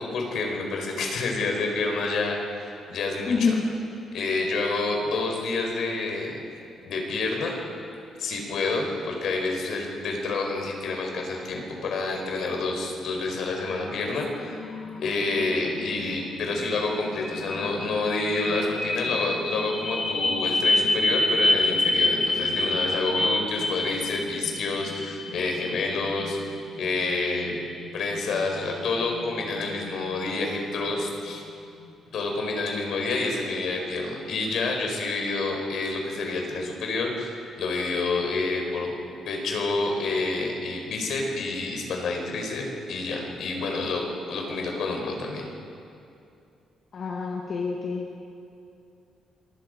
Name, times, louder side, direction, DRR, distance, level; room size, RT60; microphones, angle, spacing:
voice 1, 0.0-2.4 2.9-3.5 4.1-6.4 6.8-7.6 8.2-14.7 15.0-27.5 27.9-31.4 32.1-38.9 39.3-45.5, left 3 dB, 70° left, 1 dB, 4.8 m, -28 dB
voice 2, 3.3-3.7 46.9-48.1, left 4 dB, 50° left, 1 dB, 1.9 m, -26 dB
sound 1, 13.8-31.9, left 1 dB, 35° left, 4.0 m, -29 dB
26.5 x 20.0 x 5.2 m, 2.6 s
cardioid pair, 90°, 0 cm